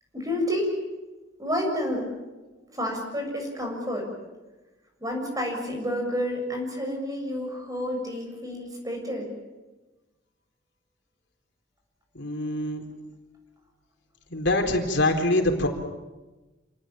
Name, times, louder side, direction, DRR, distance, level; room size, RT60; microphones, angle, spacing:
voice 1, 0.1-0.7 1.4-2.1 2.7-4.1 5.0-9.3, equal, 20° right, 2 dB, 7.0 m, -29 dB
voice 2, 12.1-12.8 14.3-15.7, left 1 dB, 60° left, 3 dB, 4.2 m, -24 dB
28.0 x 19.0 x 9.0 m, 1.1 s
head